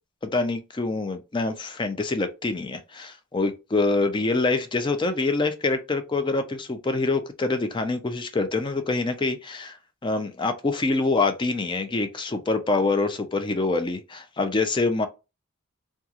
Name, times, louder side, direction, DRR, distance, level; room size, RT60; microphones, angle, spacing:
voice 1, 0.2-9.8 10.0-15.1, left 3 dB, 25° left, 0.4 m, -25 dB
2.9 x 2.3 x 2.4 m
head